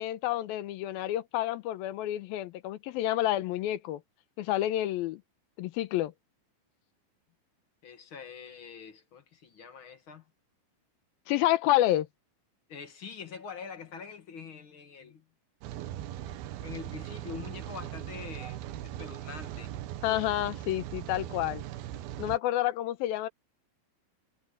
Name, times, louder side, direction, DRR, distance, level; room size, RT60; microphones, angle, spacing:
voice 1, 0.0-4.0 4.4-5.2 5.6-6.1 11.3-12.1 20.0-21.6 22.2-23.3, left 14 dB, 85° left, 2.7 m, -29 dB
voice 2, 7.8-10.3 12.7-15.2 16.6-19.7, left 6 dB, 45° left, 1.9 m, -44 dB
Rain, 15.6-22.4, right 12 dB, 90° right, 3.0 m, -39 dB
omnidirectional pair, 4.2 m